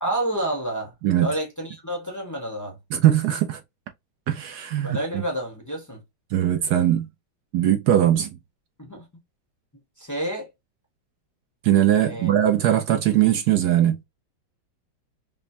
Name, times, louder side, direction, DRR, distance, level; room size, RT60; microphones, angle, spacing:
voice 1, 0.0-0.9 1.2-2.8 4.8-6.0 8.8-9.0 10.0-10.5 12.0-12.3, right 1 dB, 20° left, 0.5 m, -29 dB
voice 2, 2.9-3.6 4.3-5.2 6.3-7.1 7.5-8.3 11.6-14.0, right 11 dB, 75° right, 0.9 m, -20 dB
5.2 x 2.1 x 2.6 m
omnidirectional pair, 2.2 m